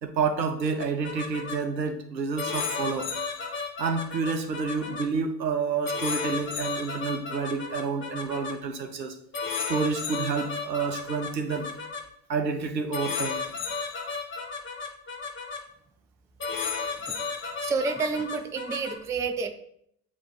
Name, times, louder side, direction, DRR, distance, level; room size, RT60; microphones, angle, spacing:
voice 1, 0.0-3.1 3.8-9.1 9.7-11.7 12.3-13.4, right 5 dB, 85° right, 6 dB, 0.8 m, -29 dB
sound 1, 0.8-1.5 2.4-5.0 5.8-8.5 9.3-12.0 12.9-15.6 16.4-19.0, left 5 dB, 25° left, 1.2 m, -33 dB
voice 2, 17.6-19.5, right 4 dB, 5° right, 7 dB, 0.3 m, -29 dB
8.4 x 3.0 x 3.9 m, 0.70 s
figure-of-eight pair, 65°, 49 cm